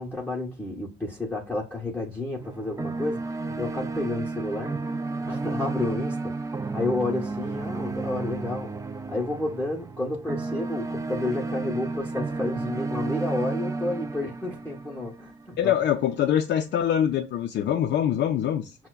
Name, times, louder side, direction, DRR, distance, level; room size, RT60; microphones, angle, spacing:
voice 1, 0.0-4.8 5.3-6.4 6.7-8.7 9.1-15.7, left 2 dB, 10° left, 0.7 m, -31 dB
Loop - Somewhere, 2.4-15.5, right 3 dB, 15° right, 0.3 m, -32 dB
voice 2, 15.6-18.8, left 10 dB, 60° left, 0.4 m, -24 dB
5.6 x 2.1 x 2.2 m
cardioid pair, 90°, 20 cm